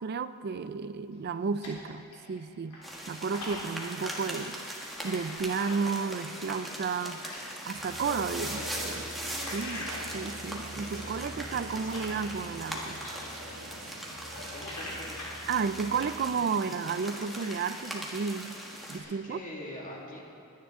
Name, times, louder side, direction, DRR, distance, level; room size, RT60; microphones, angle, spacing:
voice 1, 0.0-4.6 5.0-7.2 7.6-9.1 9.5-9.9 10.1-13.0 15.5-18.5 18.9-19.4, right 5 dB, 45° right, 13 dB, 0.4 m, -32 dB
sound 1, 1.1-2.4 2.7-7.5 7.8-12.7 13.0-18.1 18.5-19.2, left 1 dB, 85° left, 3.4 m, -45 dB
sound 2, 2.8-19.0, equal, ahead, 1.4 m, -40 dB
sound 3, 7.7-16.3, right 1 dB, 75° right, 1.8 m, -44 dB
voice 2, 8.3-8.9 10.8-12.2 14.5-15.1 19.0-20.2, left 1 dB, 35° left, -2 dB, 2.0 m, -45 dB
20.5 x 9.6 x 3.7 m, 2.7 s
head